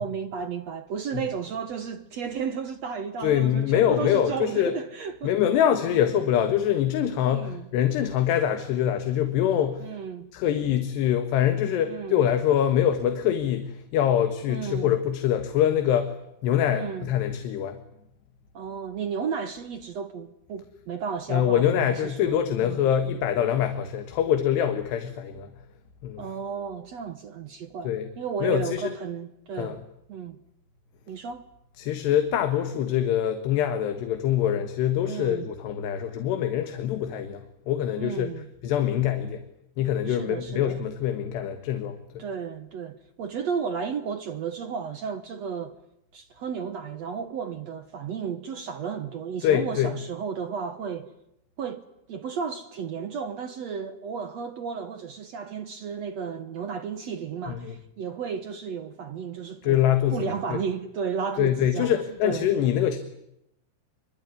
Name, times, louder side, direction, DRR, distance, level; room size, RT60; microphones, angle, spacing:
voice 1, 0.0-5.3 5.8-6.0 7.2-7.6 9.8-10.3 11.8-12.3 14.5-14.9 16.7-17.1 18.5-22.8 26.2-29.8 30.1-30.4 31.1-31.5 35.1-35.5 38.0-38.5 40.1-40.8 42.2-45.8 46.1-51.1 51.6-51.8 52.1-59.8 60.1-62.5, right 6 dB, 70° right, 1.6 m, -33 dB
voice 2, 3.2-4.7 5.2-9.8 10.3-16.2 16.4-17.8 21.3-25.5 26.0-26.2 27.9-28.1 28.4-28.9 29.6-29.8 31.8-38.3 38.6-39.5 39.8-42.2 49.4-49.9 57.5-57.8 59.6-60.6 61.4-63.0, left 10 dB, 90° left, 3.7 m, -24 dB
26.0 x 23.5 x 9.7 m
omnidirectional pair, 4.7 m